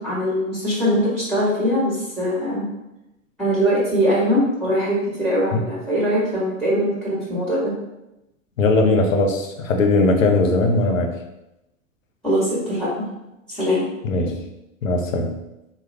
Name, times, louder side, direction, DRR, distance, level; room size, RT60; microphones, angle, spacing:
voice 1, 0.0-2.7 3.4-7.7 12.2-12.9 13.5-13.8, equal, 5° left, -6 dB, 1.1 m, -21 dB
voice 2, 8.6-11.1 14.0-14.4 14.8-15.4, left 2 dB, 75° left, 3 dB, 0.7 m, -19 dB
4.0 x 2.3 x 3.2 m, 0.93 s
figure-of-eight pair, 95°, 40 cm